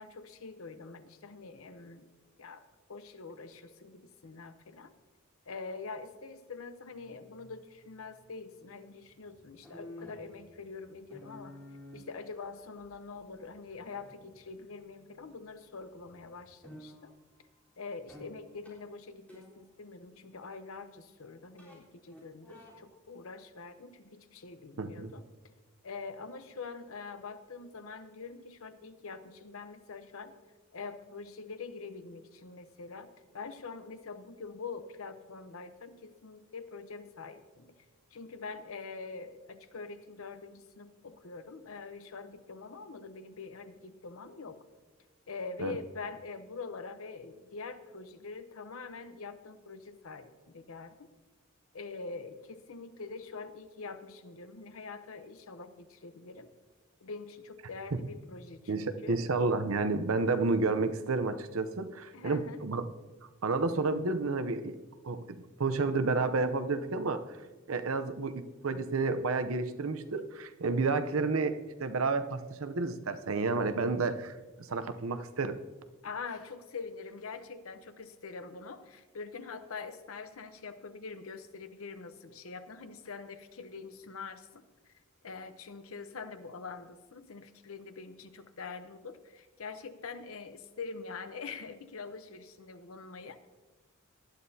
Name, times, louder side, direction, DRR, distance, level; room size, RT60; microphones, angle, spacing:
voice 1, 0.0-2.1 2.4-2.6 2.9-4.9 5.5-11.6 11.9-17.1 17.8-25.3 25.8-30.3 30.7-37.7 38.1-44.6 45.3-51.1 51.7-56.5 57.0-59.2 62.1-62.6 76.0-84.6 85.2-93.5, left 4 dB, 85° left, 10 dB, 0.8 m, -44 dB
sound 1, 6.8-8.1 9.0-15.6 15.9-17.1 18.1-18.4 18.6-18.8 19.3-19.6 21.6-21.7 22.1-22.8, left 1 dB, 10° left, 3.8 m, -52 dB
voice 2, 24.8-25.1 45.6-45.7 58.7-62.9 63.4-64.8 65.0-67.2 67.7-75.6, right 3 dB, 80° right, 10 dB, 0.7 m, -31 dB
18.0 x 11.5 x 2.8 m, 1.3 s
head